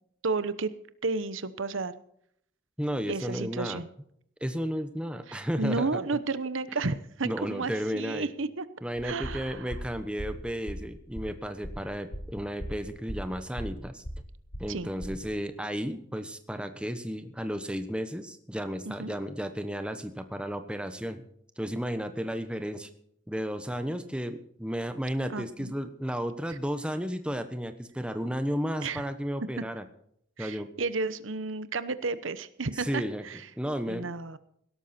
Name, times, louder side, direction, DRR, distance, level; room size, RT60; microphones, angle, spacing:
voice 1, 0.2-0.7 1.0-1.9 3.1-3.9 5.3-8.7 9.0-9.7 14.7-14.9 18.8-19.2 25.3-25.7 28.8-29.0 29.6-29.7 30.4-33.4 33.9-34.4, right 3 dB, 80° right, 14 dB, 0.9 m, -32 dB
voice 2, 2.8-3.8 4.4-5.9 7.2-8.3 8.8-14.0 14.6-21.2 21.6-22.9 23.3-29.8 30.4-30.7 32.7-33.3 33.6-34.1, equal, 5° right, 8 dB, 1.1 m, -33 dB
sound 1, 9.0-15.3, equal, 80° left, 4.6 m, -39 dB
17.0 x 13.0 x 4.4 m, 0.68 s
head